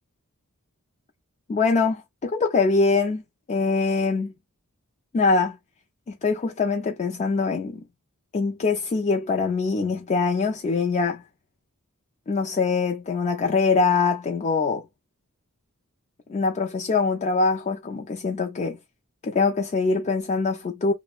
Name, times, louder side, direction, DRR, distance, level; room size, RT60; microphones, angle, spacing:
voice 1, 1.5-3.2 3.5-4.3 5.1-5.6 6.1-7.8 8.3-11.2 12.3-14.8 16.3-18.8 19.2-20.9, left 4 dB, 30° left, 0.3 m, -23 dB
3.0 x 2.0 x 2.3 m
head